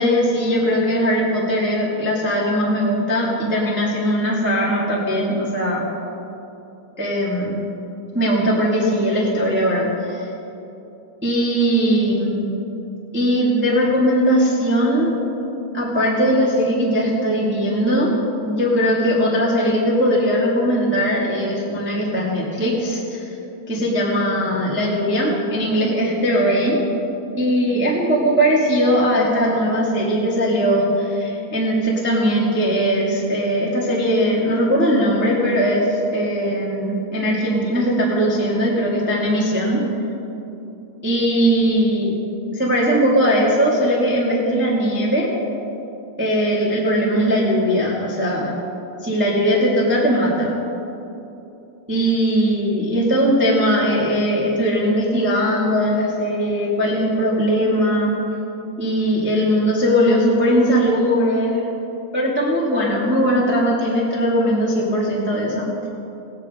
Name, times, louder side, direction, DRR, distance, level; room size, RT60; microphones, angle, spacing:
voice 1, 0.0-5.9 7.0-7.6 8.1-10.3 11.2-12.5 13.1-15.1 15.7-18.1 18.4-23.3 23.7-26.8 27.4-39.8 41.0-42.1 42.5-45.3 46.2-48.6 49.0-50.5 51.9-58.1 58.8-61.7 62.1-65.9, equal, 5° right, -5 dB, 0.8 m, -19 dB
19.0 x 9.7 x 3.7 m, 2.9 s
omnidirectional pair, 4.3 m